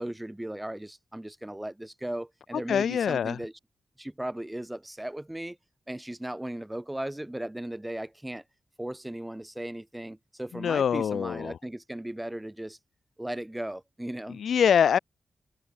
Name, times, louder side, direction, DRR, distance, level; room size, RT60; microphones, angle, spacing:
voice 1, 0.0-3.5 4.0-5.6 5.9-8.4 8.8-12.8 13.2-14.4, right 1 dB, 10° right, 4.1 m, -37 dB
voice 2, 2.7-3.4 10.5-11.6 14.3-15.0, left 8 dB, 85° left, 0.3 m, -24 dB
wide cardioid pair, 125°, 0 cm